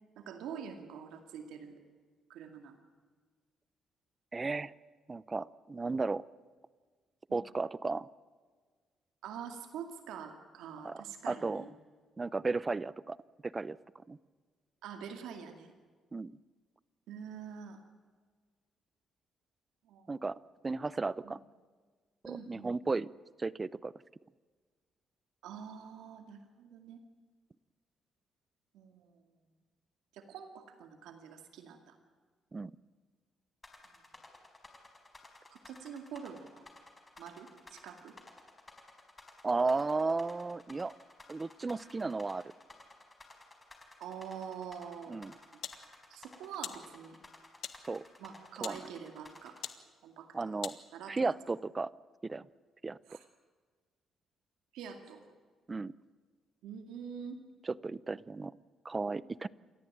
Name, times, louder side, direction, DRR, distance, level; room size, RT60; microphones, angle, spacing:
voice 1, 0.2-1.8 2.3-2.8 9.2-11.7 14.8-15.7 17.1-17.8 19.9-20.2 21.2-21.3 22.3-22.7 25.4-27.0 28.7-29.2 30.1-32.0 35.5-36.6 37.2-38.1 44.0-45.6 46.1-47.2 48.2-49.6 50.0-50.6 50.9-51.4 53.1-53.3 54.7-55.2 56.6-57.4, right 7 dB, 85° right, 6 dB, 2.2 m, -46 dB
voice 2, 4.3-4.7 5.1-6.2 7.3-8.1 10.8-11.6 12.2-13.2 13.5-13.8 14.1-14.2 16.1-16.3 20.1-20.4 20.6-21.4 22.2-23.1 23.4-23.9 32.5-32.7 39.4-40.9 41.3-42.4 45.1-45.3 47.8-48.0 48.6-48.8 50.3-50.8 51.1-51.9 52.2-52.5 52.8-53.0 55.7-55.9 57.6-58.6 58.8-59.5, right 3 dB, 25° right, 20 dB, 0.7 m, -34 dB
sound 1, 33.6-49.7, left 2 dB, 25° left, 4.6 m, -54 dB
sound 2, 45.0-51.3, left 10 dB, 75° left, 1.5 m, -48 dB
28.5 x 14.0 x 8.8 m, 1.5 s
cardioid pair, 90°, 0 cm